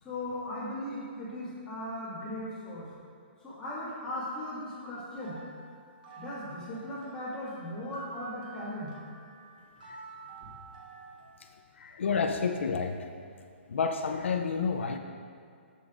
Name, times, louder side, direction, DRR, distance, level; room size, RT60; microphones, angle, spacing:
voice 1, 0.0-2.8 3.4-5.4 6.2-8.9, left 1 dB, 10° left, -11 dB, 1.9 m, -38 dB
sound 1, 5.1-11.3, right 4 dB, 45° right, 1.3 m, -50 dB
voice 2, 11.8-13.1 13.7-15.0, left 5 dB, 80° left, 5 dB, 0.5 m, -30 dB
11.0 x 6.7 x 2.5 m, 2.3 s
hypercardioid pair, 170°, 7 cm